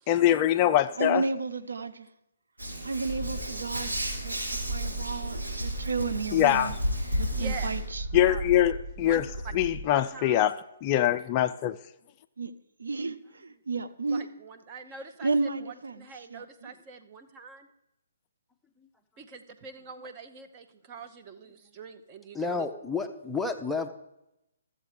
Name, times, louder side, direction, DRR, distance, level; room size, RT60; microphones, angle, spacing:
voice 1, 0.1-1.2 6.3-6.7 8.1-9.3 9.5-10.5 10.8-11.7, left 12 dB, 30° left, 0.3 m, -23 dB
voice 2, 1.0-2.1 2.8-6.7 7.2-8.0 12.4-12.5 12.8-14.3 15.2-16.7, right 3 dB, 70° right, 0.6 m, -32 dB
Hands, 2.6-7.8, equal, 90° right, 3.7 m, -34 dB
sound 1, 3.1-9.9, right 2 dB, 50° right, 2.2 m, -36 dB
voice 3, 7.3-7.7 8.3-8.4 9.0-9.5 9.9-10.4 14.1-15.3 15.6-17.7 19.2-22.7, right 5 dB, 25° right, 0.9 m, -44 dB
voice 4, 22.3-23.9, left 4 dB, 5° left, 0.7 m, -31 dB
13.5 x 7.7 x 4.9 m
figure-of-eight pair, 130°, 0 cm